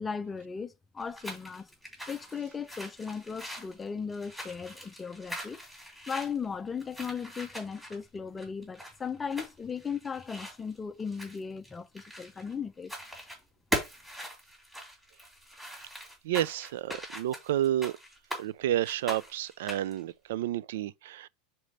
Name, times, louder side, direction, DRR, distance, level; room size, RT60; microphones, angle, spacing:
voice 1, 0.0-1.7 2.1-5.6 6.1-12.9, left 6 dB, 10° left, 0.5 m, -37 dB
sound 1, 1.0-12.5 12.8-13.4 13.7-18.4 18.8-20.0, equal, 5° right, 2.9 m, -41 dB
voice 2, 16.2-17.9 18.4-21.3, right 12 dB, 80° right, 0.3 m, -30 dB
5.1 x 4.3 x 5.2 m
supercardioid pair, 165°, 0 cm